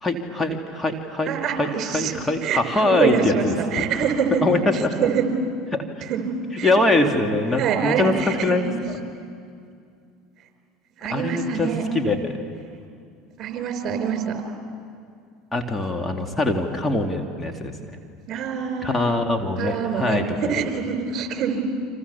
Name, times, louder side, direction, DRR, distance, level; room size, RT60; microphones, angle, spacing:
voice 1, 0.0-1.3 1.6-1.7 1.9-3.8 4.4-4.9 5.7-5.8 6.6-8.1 8.4-8.6 11.1-12.3 15.5-18.0 18.8-20.6, left 2 dB, 15° left, 3 dB, 2.5 m, -23 dB
voice 2, 1.3-5.3 6.0-6.8 7.5-8.6 9.0-9.1 11.0-11.9 13.4-14.4 18.3-19.1 19.6-21.6, right 6 dB, 50° right, 6 dB, 4.5 m, -25 dB
30.0 x 26.0 x 7.1 m, 2.4 s
hypercardioid pair, 80°, 0 cm